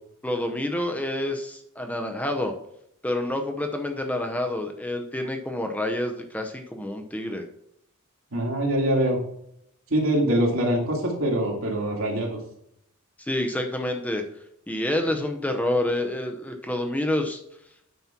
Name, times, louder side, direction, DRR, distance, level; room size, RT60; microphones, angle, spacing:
voice 1, 0.2-2.5 3.0-7.4 13.2-14.2 14.7-17.4, left 1 dB, 5° left, 5 dB, 0.7 m, -28 dB
voice 2, 8.3-9.2 9.9-12.4, right 1 dB, 70° right, 0 dB, 2.4 m, -24 dB
9.3 x 4.4 x 5.8 m, 0.74 s
head